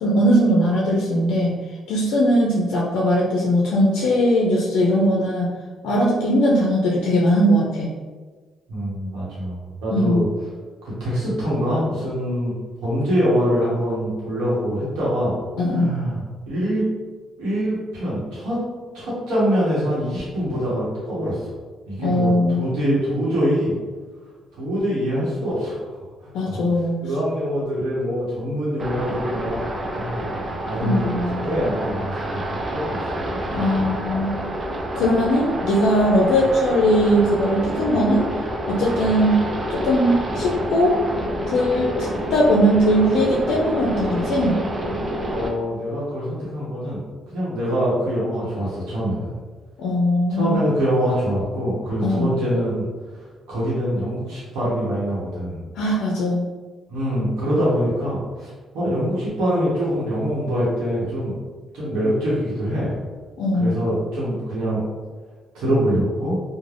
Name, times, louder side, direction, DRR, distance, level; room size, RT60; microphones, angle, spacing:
voice 1, 0.0-1.6 1.9-5.5 5.8-7.9 9.9-10.3 15.6-16.0 22.0-22.7 26.3-27.0 30.8-31.5 33.5-34.4 34.9-38.3 38.7-41.0 41.5-44.6 49.8-50.6 52.0-52.3 55.7-56.5 63.4-63.8, equal, 85° left, -3 dB, 0.3 m, -20 dB
voice 2, 8.7-10.2 10.8-12.5 12.8-15.3 15.7-16.2 16.5-16.8 17.4-18.6 18.9-21.5 21.8-22.3 22.6-23.7 24.6-26.6 27.0-29.6 29.9-30.3 30.6-34.3 45.2-49.3 50.3-52.8 53.5-55.6 56.9-61.4 61.7-62.9 63.5-64.9 65.5-66.4, equal, 90° right, -8 dB, 0.9 m, -24 dB
sound 1, 28.8-45.5, right 1 dB, 35° right, 0.5 m, -28 dB
2.4 x 2.1 x 3.2 m, 1.4 s
cardioid pair, 90°, 0 cm